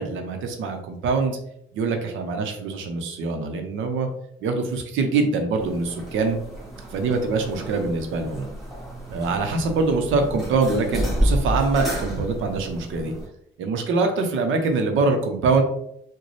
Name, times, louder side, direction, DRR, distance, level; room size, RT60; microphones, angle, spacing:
voice 1, 0.0-1.4 1.7-4.1 4.4-6.4 6.9-8.5 9.1-13.1 13.6-15.6, right 3 dB, 80° right, 5 dB, 0.7 m, -24 dB
sound 1, 5.6-13.3, equal, ahead, 1.4 m, -30 dB
3.9 x 2.2 x 3.1 m, 0.75 s
cardioid pair, 90°, 20 cm